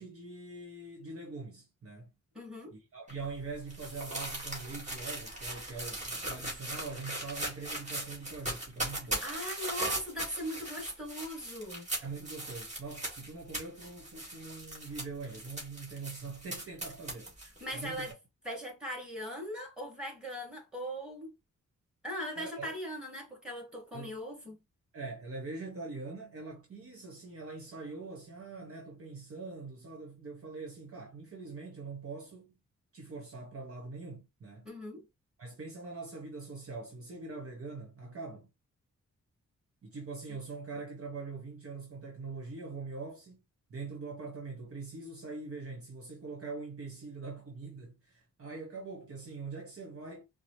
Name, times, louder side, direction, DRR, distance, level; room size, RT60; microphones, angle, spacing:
voice 1, 0.0-2.1 2.7-9.3 12.0-17.3 17.7-18.1 22.3-22.7 23.9-24.2 24.9-32.5 32.9-34.7 35.4-38.5 39.8-43.4 43.7-50.2, right 3 dB, 50° right, 1.2 m, -43 dB
voice 2, 2.3-2.8 9.2-11.9 17.6-18.1 18.4-21.3 22.0-24.6 34.7-35.1, equal, 5° right, 1.9 m, -39 dB
sound 1, 3.1-18.1, right 1 dB, 25° right, 2.0 m, -39 dB
4.7 x 2.1 x 3.1 m
wide cardioid pair, 110°, 29 cm